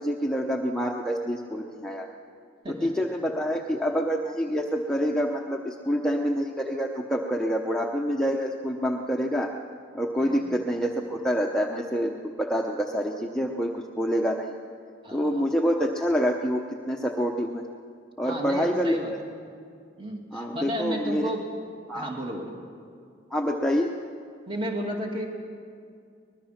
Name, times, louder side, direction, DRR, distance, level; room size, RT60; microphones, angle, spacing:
voice 1, 0.0-2.1 2.7-9.5 9.9-14.5 15.1-17.6 18.2-19.0 20.3-21.3 21.9-22.1 23.3-23.9, equal, 5° left, 0 dB, 0.8 m, -27 dB
voice 2, 2.6-3.0 10.2-10.6 15.0-15.4 18.2-19.1 20.0-21.5 21.9-22.6 24.5-25.2, equal, 25° right, 0 dB, 2.5 m, -33 dB
24.0 x 21.0 x 5.9 m, 2.3 s
head